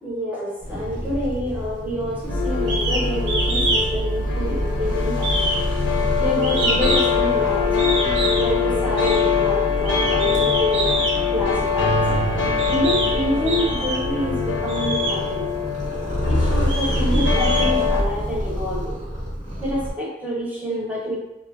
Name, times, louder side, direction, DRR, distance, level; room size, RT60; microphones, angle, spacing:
voice 1, 0.0-5.6 6.2-11.0 11.3-12.0 12.7-15.5 16.3-18.9 19.6-21.2, equal, 10° right, -6 dB, 0.7 m, -27 dB
Purr, 0.6-19.9, equal, 40° right, 0.8 m, -29 dB
sound 1, 2.3-18.0, left 5 dB, 90° left, 0.4 m, -23 dB
sound 2, 2.7-3.0 3.3-3.8 4.2-4.8 5.2-7.2 7.8-8.5 9.0-9.2 9.8-11.1 12.0-12.1 12.6-13.1 13.5-14.1 14.7-15.2 15.8-15.9 16.4-18.2, right 2 dB, 70° right, 0.6 m, -25 dB
3.0 x 2.2 x 2.2 m, 0.96 s
head